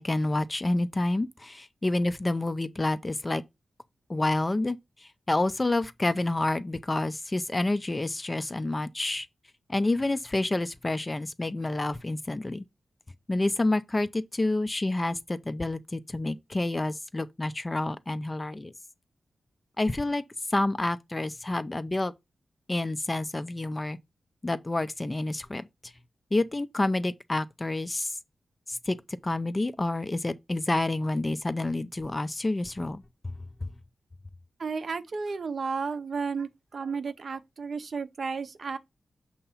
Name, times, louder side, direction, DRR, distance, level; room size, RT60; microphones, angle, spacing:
voice 1, 0.0-3.4 4.1-9.3 9.7-12.6 13.3-18.7 19.8-20.2 20.5-22.1 22.7-24.0 24.4-25.9 26.3-28.2 28.7-33.0, left 2 dB, 20° left, 0.4 m, -28 dB
voice 2, 34.6-38.8, right 5 dB, 50° right, 0.6 m, -33 dB
6.7 x 2.8 x 5.5 m
wide cardioid pair, 150°, 0 cm